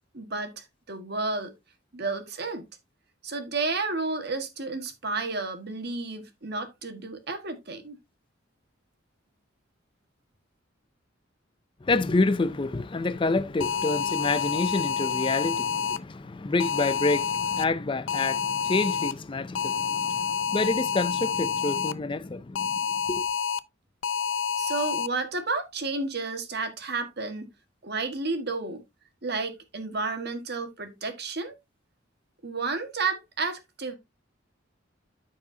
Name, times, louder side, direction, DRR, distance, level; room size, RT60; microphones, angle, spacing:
voice 1, 0.1-1.5 1.9-2.7 3.2-8.0 24.6-27.5 27.8-28.8 29.2-31.5 32.4-33.9, right 3 dB, 55° right, 1.6 m, -31 dB
voice 2, 11.8-22.8 23.1-23.2, left 3 dB, 25° left, 0.4 m, -28 dB
sound 1, 13.6-16.0 16.6-17.7 18.1-19.1 19.6-21.9 22.6-23.6 24.0-25.1, left 7 dB, 80° left, 0.5 m, -28 dB
13.5 x 4.7 x 2.7 m
head